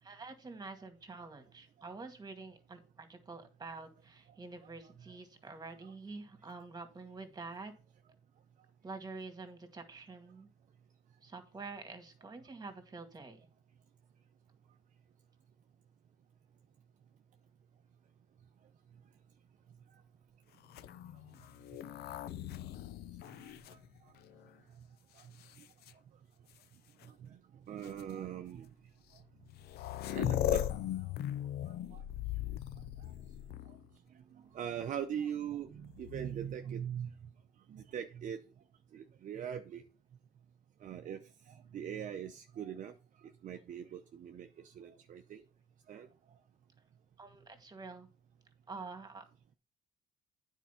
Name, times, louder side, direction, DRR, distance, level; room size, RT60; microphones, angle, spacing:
voice 1, 0.0-7.7 8.8-10.5 11.2-13.5 47.2-48.1 48.7-49.2, right 3 dB, 25° right, 7 dB, 2.0 m, -47 dB
sound 1, 20.6-24.5 25.2-25.9 27.0-27.1 27.8-28.0 29.2-29.3 29.4-33.9 35.8-36.5, left 12 dB, 70° left, 0.7 m, -38 dB
voice 2, 27.0-27.4 27.7-28.7 30.1-30.7 30.9-31.0 31.9-32.0 33.0-33.1 33.7-33.8 34.5-37.1 37.7-38.4 38.9-39.8 40.8-41.2 41.5-42.9 43.4-45.4 45.9-46.1, right 9 dB, 50° right, 6 dB, 0.7 m, -41 dB
9.2 x 4.7 x 5.6 m, 0.33 s
cardioid pair, 110°, 17 cm